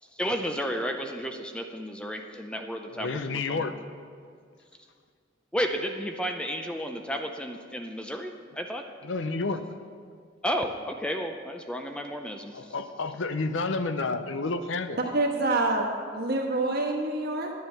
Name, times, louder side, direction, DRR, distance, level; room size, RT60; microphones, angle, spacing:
voice 1, 0.2-3.2 3.5-3.6 5.5-8.9 10.4-12.5, equal, 5° left, 4 dB, 0.5 m, -32 dB
voice 2, 2.9-3.8 9.0-9.6 12.5-15.0, left 3 dB, 80° left, 10 dB, 0.7 m, -30 dB
voice 3, 15.0-17.5, right 2 dB, 55° right, 1 dB, 1.5 m, -27 dB
10.0 x 9.5 x 5.8 m, 2.1 s
head